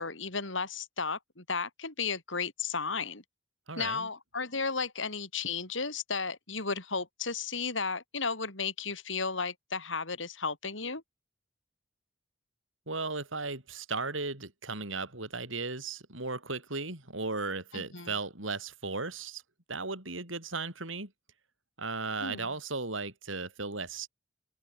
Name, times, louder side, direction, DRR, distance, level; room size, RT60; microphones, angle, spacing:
voice 1, 0.0-3.2 3.8-11.0 17.7-18.1 22.2-22.5, left 4 dB, 75° left, 5.3 m, -34 dB
voice 2, 3.7-4.1 12.9-19.4 19.7-21.1 21.8-24.1, right 3 dB, 85° right, 6.7 m, -36 dB
open air
head